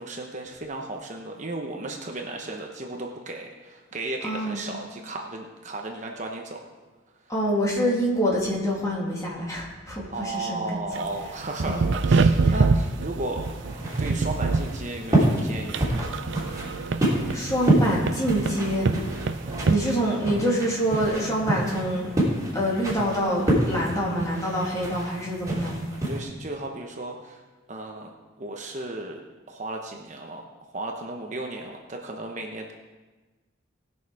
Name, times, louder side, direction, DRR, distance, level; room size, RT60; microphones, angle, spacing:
voice 1, 0.0-6.6 10.1-13.5 14.0-16.1 26.1-27.4 27.7-28.1 28.4-29.2 29.5-30.4 30.7-32.7, right 2 dB, 35° right, 2 dB, 0.9 m, -35 dB
voice 2, 4.2-4.6 7.3-10.8 11.6-11.8 12.4-12.5 17.3-18.9 19.6-22.1 22.5-25.8, equal, 15° left, -4 dB, 2.6 m, -26 dB
sound 1, 10.9-19.8, right 4 dB, 60° right, 0.5 m, -25 dB
sound 2, 13.4-26.2, right 1 dB, 20° right, 3.2 m, -28 dB
18.5 x 6.5 x 4.8 m, 1.2 s
head